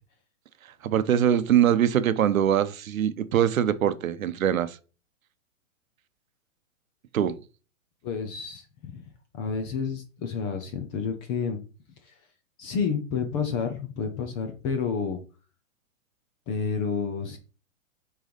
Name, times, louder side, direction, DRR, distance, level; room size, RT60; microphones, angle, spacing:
voice 1, 0.8-4.8 7.1-7.4, right 10 dB, 80° right, 0.8 m, -23 dB
voice 2, 8.0-9.0 9.3-11.6 12.0-12.2 12.6-15.2 16.5-17.4, left 6 dB, 15° left, 0.3 m, -30 dB
6.5 x 3.1 x 5.1 m
hypercardioid pair, 125°, 40 cm